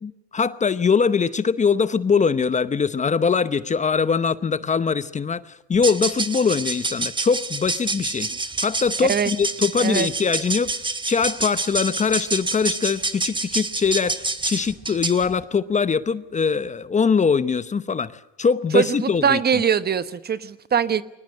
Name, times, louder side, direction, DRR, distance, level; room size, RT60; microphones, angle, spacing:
voice 1, 0.0-8.3 8.6-10.7 11.1-19.4, left 5 dB, 25° left, 14 dB, 0.8 m, -22 dB
sound 1, 5.7-15.3, right 3 dB, 15° right, 1.7 m, -28 dB
voice 2, 9.8-10.1 18.7-21.0, right 7 dB, 35° right, 14 dB, 1.1 m, -22 dB
22.5 x 19.5 x 7.9 m, 0.95 s
supercardioid pair, 100°, 29 cm